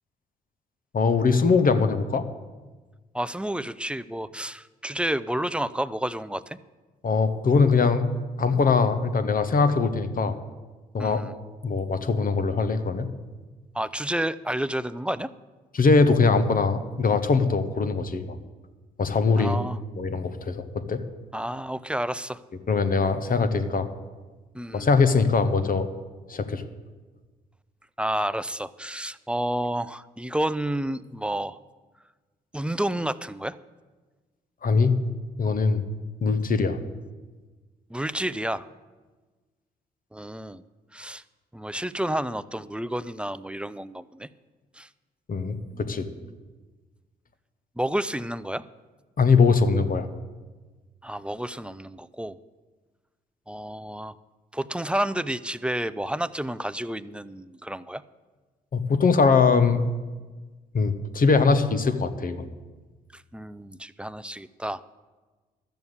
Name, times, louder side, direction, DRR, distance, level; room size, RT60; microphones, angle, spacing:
voice 1, 0.9-2.2 7.0-8.0 8.4-10.4 10.9-11.2 11.6-13.1 15.7-18.2 19.0-19.6 20.0-21.0 22.7-23.9 24.7-25.9 26.3-26.6 34.6-34.9 35.4-35.8 36.2-36.8 45.3-46.1 49.2-50.1 58.7-59.8 60.7-62.5, left 4 dB, 45° left, 10 dB, 1.2 m, -22 dB
voice 2, 3.1-6.6 11.0-11.3 13.7-15.3 19.4-19.8 21.3-22.4 24.5-24.9 28.0-31.6 32.5-33.6 37.9-38.7 40.1-40.6 40.9-41.2 41.5-44.3 44.8-44.9 45.7-46.4 47.8-48.7 51.0-52.4 53.5-54.2 54.5-58.0 63.1-64.8, right 1 dB, 5° right, 15 dB, 0.5 m, -30 dB
12.5 x 7.0 x 8.1 m, 1.3 s
hypercardioid pair, 45°, 21 cm